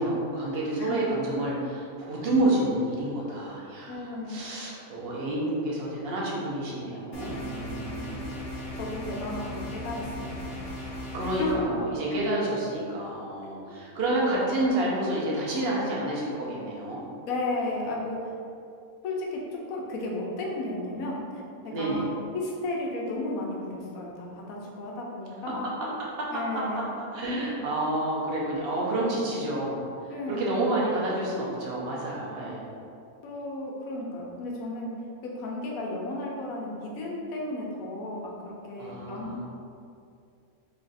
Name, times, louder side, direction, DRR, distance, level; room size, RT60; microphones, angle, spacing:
voice 1, 0.0-4.0 4.3-8.2 11.1-17.0 21.7-22.1 25.6-25.7 26.0-26.6 27.0-32.7 38.8-39.4, right 1 dB, 50° right, -5 dB, 0.8 m, -29 dB
voice 2, 3.9-4.5 8.8-10.6 11.4-11.5 13.7-13.9 17.3-18.3 19.0-19.4 19.7-21.2 21.6-22.0 22.3-25.6 26.3-26.9 30.1-30.5 33.2-34.9 35.2-39.4, left 2 dB, 75° left, -2 dB, 1.1 m, -34 dB
sound 1, 7.1-11.5, left 1 dB, 45° left, 1.1 m, -37 dB
3.2 x 2.4 x 3.9 m, 2.5 s
omnidirectional pair, 1.6 m